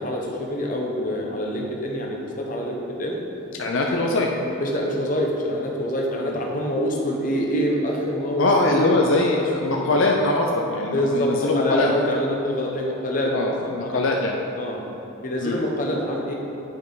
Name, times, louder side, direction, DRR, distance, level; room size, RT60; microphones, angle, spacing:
voice 1, 0.0-3.2 3.9-4.0 4.6-9.2 9.6-10.0 10.9-13.3 13.6-14.0 14.6-14.8 15.2-16.3, equal, 40° left, -1 dB, 1.0 m, -26 dB
voice 2, 3.6-4.5 6.3-6.4 8.4-11.9 13.3-14.4 15.4-15.6, left 2 dB, 70° left, 0 dB, 0.5 m, -22 dB
8.9 x 5.3 x 4.0 m, 3.0 s
head